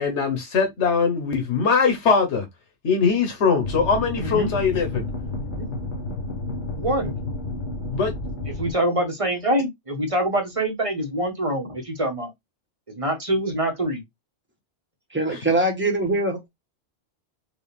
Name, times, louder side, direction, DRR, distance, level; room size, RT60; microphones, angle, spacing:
voice 1, 0.0-2.4 2.8-5.1 7.9-8.1 8.4-8.5 15.3-15.4, left 5 dB, 85° left, 1.3 m, -21 dB
sound 1, 3.6-8.7, left 2 dB, 45° left, 1.4 m, -31 dB
voice 2, 6.8-7.1 8.5-12.3 13.0-14.0, right 1 dB, 30° right, 1.3 m, -25 dB
voice 3, 15.1-16.5, right 2 dB, 10° right, 1.3 m, -22 dB
4.8 x 2.7 x 3.3 m
omnidirectional pair, 1.2 m